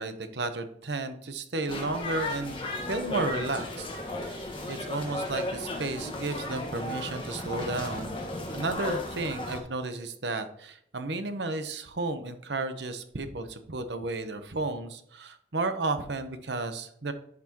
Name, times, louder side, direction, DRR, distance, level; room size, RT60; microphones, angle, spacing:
voice 1, 0.0-8.2 8.5-17.1, right 2 dB, 85° right, 9 dB, 1.0 m, -33 dB
sound 1, 1.7-9.6, left 1 dB, 30° left, 1.4 m, -35 dB
10.5 x 6.0 x 3.0 m, 0.68 s
head